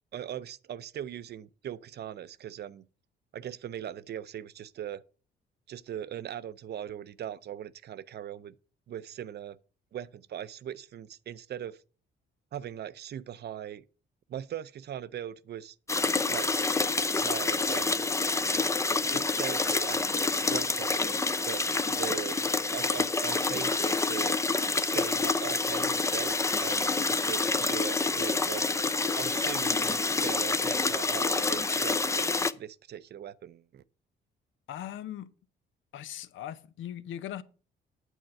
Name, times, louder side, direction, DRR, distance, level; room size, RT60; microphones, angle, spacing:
voice 1, 0.1-2.9 3.3-5.0 5.7-8.6 8.9-9.6 9.9-11.8 12.5-13.8 14.3-15.8 16.3-16.7 17.2-18.1 19.1-21.6 21.9-22.4 22.7-24.4 24.8-28.7 29.1-33.8, right 10 dB, 55° right, 0.6 m, -40 dB
sound 1, 15.9-32.5, left 3 dB, 15° left, 0.5 m, -28 dB
voice 2, 34.7-35.3 35.9-37.4, left 11 dB, 75° left, 0.8 m, -39 dB
9.1 x 4.5 x 7.5 m
cardioid pair, 90°, 20 cm